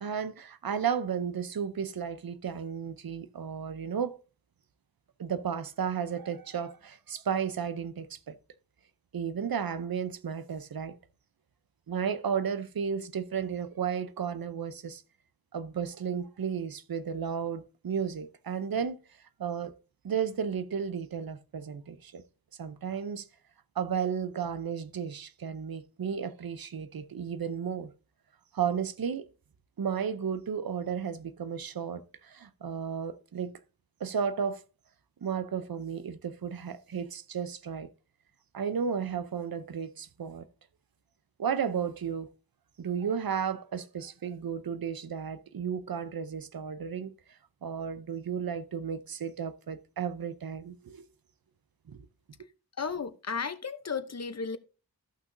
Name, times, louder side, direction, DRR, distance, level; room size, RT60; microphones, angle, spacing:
voice 1, 0.0-4.2 5.2-8.3 9.1-11.0 11.9-15.0 15.5-19.0 19.4-19.7 20.0-22.2 22.6-23.3 23.8-27.9 28.5-29.3 29.8-33.5 34.0-34.6 35.2-37.9 38.5-40.5 41.4-42.3 42.8-47.1 47.6-51.1 51.9-52.1, right 7 dB, 65° right, 0.7 m, -33 dB
voice 2, 52.8-54.6, left 5 dB, 45° left, 0.7 m, -34 dB
14.0 x 5.9 x 2.6 m
wide cardioid pair, 75°, 38 cm